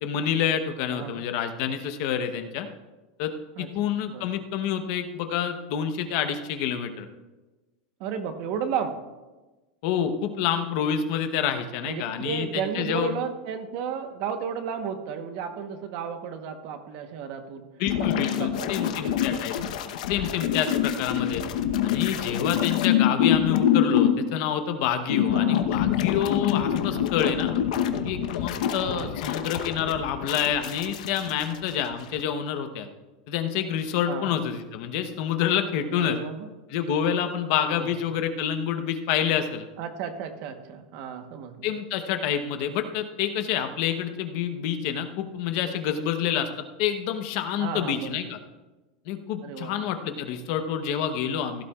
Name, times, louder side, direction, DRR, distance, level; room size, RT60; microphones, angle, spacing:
voice 1, 0.0-2.7 3.2-3.3 3.6-7.1 9.8-13.1 17.8-19.6 20.1-21.4 21.8-27.5 28.0-32.9 33.3-36.2 36.7-39.7 41.6-46.5 46.8-48.4 49.1-51.6, left 8 dB, 45° left, 7 dB, 0.9 m, -28 dB
voice 2, 0.9-1.2 3.6-4.3 8.0-9.0 11.8-17.7 18.0-19.3 19.6-19.7 25.3-25.7 26.7-27.0 28.8-29.1 34.1-34.4 36.0-36.5 37.7-37.9 39.8-41.7 47.6-48.2 49.4-50.2, right 7 dB, 45° right, 7 dB, 1.1 m, -34 dB
sound 1, 17.8-24.2 25.1-31.9 32.2-32.3, left 10 dB, 70° left, 0.9 m, -25 dB
17.0 x 12.0 x 2.4 m, 1.2 s
supercardioid pair, 165°, 4 cm